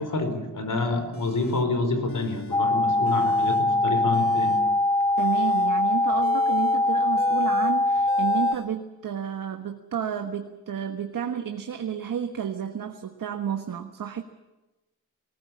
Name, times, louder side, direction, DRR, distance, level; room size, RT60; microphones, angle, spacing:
voice 1, 0.0-4.6, left 3 dB, 70° left, 8 dB, 4.6 m, -28 dB
sound 1, 1.1-1.7 2.1-2.6 2.9-3.7 4.0-8.7, left 4 dB, 40° left, 2.5 m, -41 dB
sound 2, 2.5-8.6, left 2 dB, 15° left, 0.9 m, -22 dB
voice 2, 5.2-14.2, right 8 dB, 85° right, 5 dB, 1.4 m, -31 dB
20.5 x 19.0 x 8.6 m, 1.1 s
cardioid pair, 60°, 33 cm